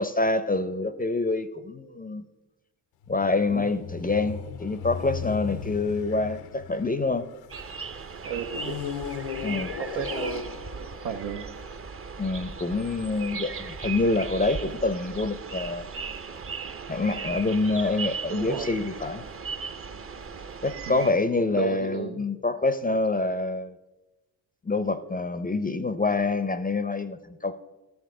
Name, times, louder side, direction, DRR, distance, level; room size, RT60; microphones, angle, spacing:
voice 1, 0.0-2.2 3.1-7.3 9.4-9.7 12.2-15.8 16.9-19.2 20.6-23.8 24.6-27.5, left 3 dB, 20° left, 12 dB, 0.5 m, -26 dB
sound 1, 3.0-7.7 8.5-11.9, left 7 dB, 80° left, 0.7 m, -37 dB
sound 2, 7.5-21.1, right 5 dB, 30° right, 0.6 m, -37 dB
voice 2, 8.2-8.8 9.8-11.5 18.3-18.7 20.9-21.1 21.5-22.2, right 7 dB, 90° right, 3 dB, 0.7 m, -33 dB
13.0 x 7.1 x 3.7 m, 1.1 s
supercardioid pair, 50°, 50 cm